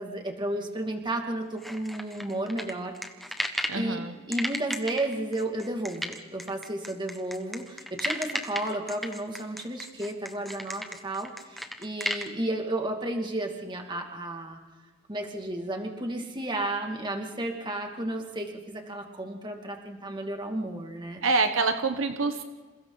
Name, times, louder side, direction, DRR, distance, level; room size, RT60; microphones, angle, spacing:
voice 1, 0.0-2.9 3.3-14.6 15.1-21.2, right 1 dB, 20° right, 3 dB, 2.4 m, -33 dB
sound 1, 1.6-3.8 4.3-12.3, equal, ahead, 1.3 m, -34 dB
voice 2, 3.7-4.1 21.2-22.4, right 3 dB, 75° right, 7 dB, 1.2 m, -26 dB
29.0 x 28.0 x 4.0 m, 1.4 s
head